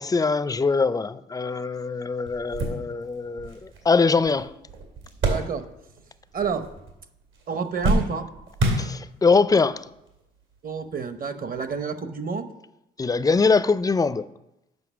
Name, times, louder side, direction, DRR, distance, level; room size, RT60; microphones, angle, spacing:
voice 1, 0.0-4.5 8.8-9.8 13.0-14.3, left 4 dB, 20° left, 0.4 m, -22 dB
sound 1, 1.8-1.9 2.3-6.0 6.3-7.0 7.3-9.4 10.1-10.2 11.5-11.7, right 2 dB, 80° right, 2.3 m, -28 dB
voice 2, 5.2-5.6 6.3-6.6 7.5-8.3 10.6-12.5, right 5 dB, 45° right, 0.9 m, -29 dB
7.9 x 5.5 x 6.2 m
cardioid pair, 90°, 20 cm